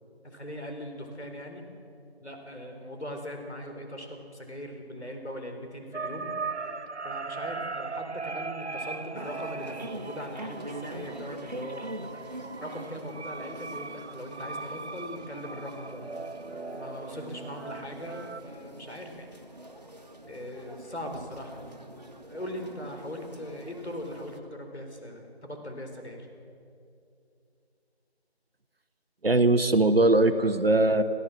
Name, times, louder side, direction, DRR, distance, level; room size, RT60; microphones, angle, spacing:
voice 1, 0.2-1.6 2.2-6.3 7.0-12.2 12.6-16.1 16.7-19.4 20.3-21.7 22.3-26.3, equal, 85° left, 4 dB, 4.6 m, -40 dB
sound 1, 5.9-18.4, right 4 dB, 90° right, 0.9 m, -39 dB
sound 2, 9.1-24.4, right 1 dB, 40° right, 1.6 m, -44 dB
voice 2, 29.2-31.0, right 2 dB, 60° right, 10 dB, 1.3 m, -21 dB
26.0 x 16.0 x 7.5 m, 2.6 s
figure-of-eight pair, 175°, 32 cm